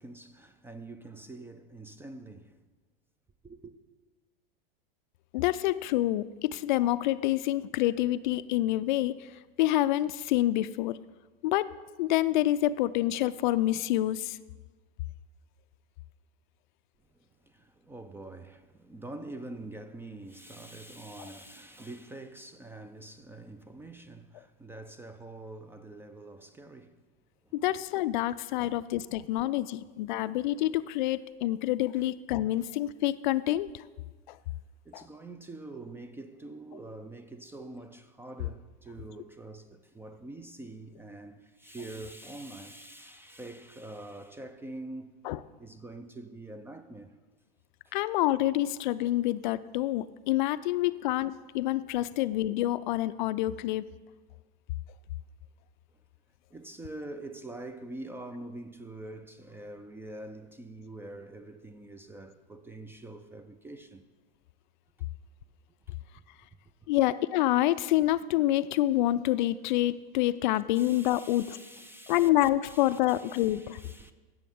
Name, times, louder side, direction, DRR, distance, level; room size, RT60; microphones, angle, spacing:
voice 1, 0.0-2.6 3.4-3.7 17.2-27.0 27.4-27.6 28.6-28.8 30.2-30.3 32.0-32.1 34.8-45.2 45.6-47.2 47.8-48.0 56.5-64.1 65.0-65.1 65.9-66.0 70.8-74.1, right 2 dB, 10° right, 0.3 m, -45 dB
voice 2, 5.3-9.3 9.6-11.0 11.4-11.7 12.0-14.4 27.5-33.8 34.3-34.4 34.9-35.0 45.2-45.4 47.9-53.8 66.9-71.6 72.1-73.8, left 15 dB, 55° left, 0.4 m, -27 dB
15.5 x 6.9 x 3.6 m
hypercardioid pair, 95°, 29 cm